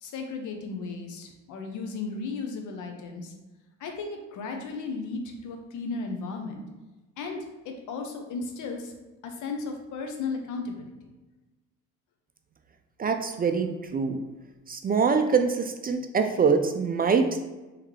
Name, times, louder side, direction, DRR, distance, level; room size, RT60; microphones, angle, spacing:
voice 1, 0.0-3.3 3.8-6.6 7.2-7.4 7.6-8.9 9.2-11.1, left 4 dB, 65° left, 3 dB, 0.8 m, -35 dB
voice 2, 13.0-14.2 14.7-17.4, right 5 dB, 30° right, 6 dB, 0.4 m, -24 dB
3.5 x 3.2 x 3.1 m, 1.1 s
supercardioid pair, 65°, 33 cm